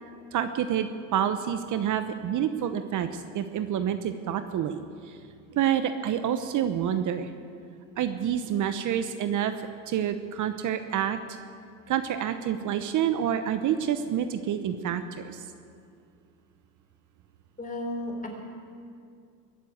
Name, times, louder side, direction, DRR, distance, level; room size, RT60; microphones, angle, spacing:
voice 1, 0.3-5.2 5.5-7.3 8.0-9.5 9.9-11.2 11.9-15.4, right 9 dB, 50° right, 9 dB, 0.9 m, -28 dB
voice 2, 17.6-18.3, left 1 dB, 20° left, 2 dB, 4.0 m, -33 dB
22.0 x 7.5 x 8.5 m, 2.4 s
supercardioid pair, 95°, 40 cm